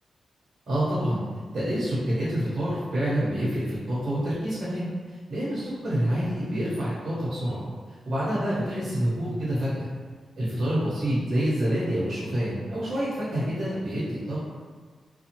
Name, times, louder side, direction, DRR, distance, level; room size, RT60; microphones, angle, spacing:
voice 1, 0.7-1.2 1.5-9.9 10.4-14.4, equal, 60° right, -9 dB, 1.0 m, -27 dB
2.6 x 2.3 x 2.9 m, 1.6 s
cardioid pair, 90°, 0 cm